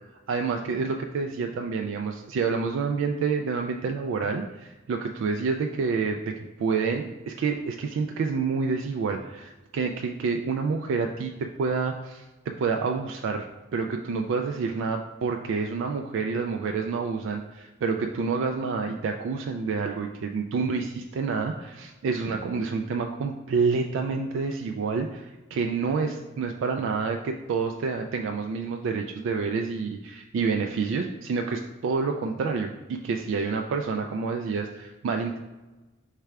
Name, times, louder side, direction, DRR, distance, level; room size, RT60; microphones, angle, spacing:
voice 1, 0.3-13.5 13.7-35.4, right 5 dB, 65° right, 3 dB, 0.3 m, -28 dB
3.4 x 3.3 x 4.6 m, 1.1 s
head